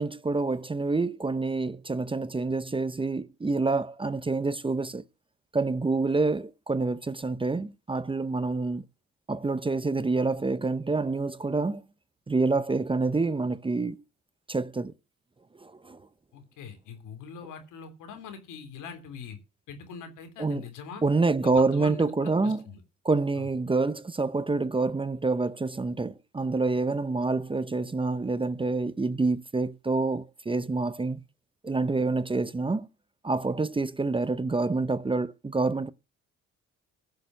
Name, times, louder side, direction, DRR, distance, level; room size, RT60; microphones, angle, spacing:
voice 1, 0.0-5.0 5.5-8.8 9.3-11.8 12.3-14.0 14.5-14.9 15.6-16.0 20.4-20.6 21.0-22.6 23.0-31.2 31.6-32.9 33.2-35.9, right 3 dB, 15° right, 0.7 m, -27 dB
voice 2, 16.3-19.4 19.7-21.0 21.4-22.8 23.4-23.5, left 6 dB, 90° left, 3.4 m, -42 dB
15.0 x 6.9 x 6.2 m
cardioid pair, 90°, 30 cm